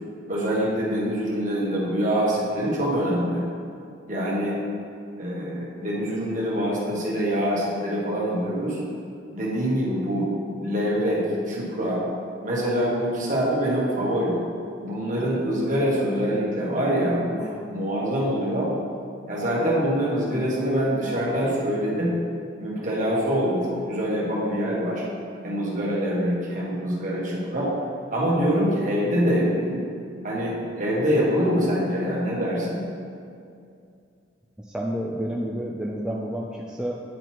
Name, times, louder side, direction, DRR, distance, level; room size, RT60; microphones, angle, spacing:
voice 1, 0.3-3.4 4.1-4.6 5.2-8.8 9.3-10.3 10.6-12.0 12.4-14.4 14.8-18.7 19.3-22.1 22.6-25.0 25.4-27.7 28.1-29.8 30.2-32.8, equal, 40° right, -5 dB, 1.6 m, -25 dB
voice 2, 34.6-37.0, equal, 5° right, -3 dB, 0.4 m, -30 dB
9.9 x 3.9 x 4.6 m, 2.4 s
head